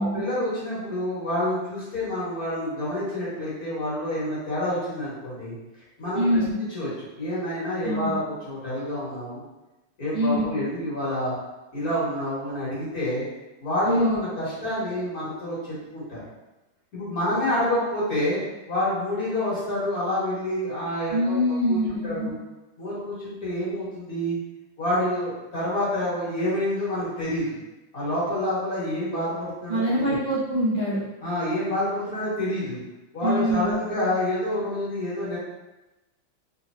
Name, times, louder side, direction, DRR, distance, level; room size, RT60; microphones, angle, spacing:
voice 1, 0.0-5.5 6.0-6.4 6.7-6.9 7.2-9.4 10.0-11.3 11.7-13.2 13.6-16.2 16.9-18.4 18.7-21.4 21.7-22.4 22.8-24.4 24.8-27.6 27.9-30.2 31.2-32.8 33.1-35.4, left 1 dB, 45° left, -9 dB, 1.8 m, -28 dB
voice 2, 6.1-6.6 7.8-8.1 10.1-10.6 13.8-14.2 21.1-22.3 29.7-31.0 33.2-33.7, equal, 75° right, -12 dB, 0.4 m, -24 dB
3.4 x 3.0 x 2.5 m, 1.0 s
omnidirectional pair, 2.4 m